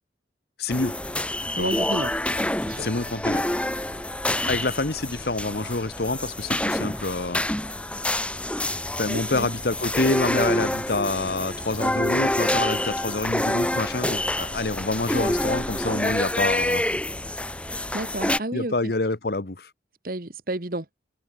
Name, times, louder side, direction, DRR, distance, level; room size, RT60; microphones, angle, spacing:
voice 1, 0.6-0.9 1.6-1.7 2.8-3.4 4.5-7.5 9.0-16.9 18.5-19.7, left 2 dB, 60° left, 1.1 m, -27 dB
sound 1, 0.7-18.4, left 1 dB, 5° left, 1.8 m, -27 dB
voice 2, 1.6-2.1 2.6-2.9 9.1-9.5 17.9-18.9 20.0-20.8, right 1 dB, 55° right, 1.7 m, -31 dB
head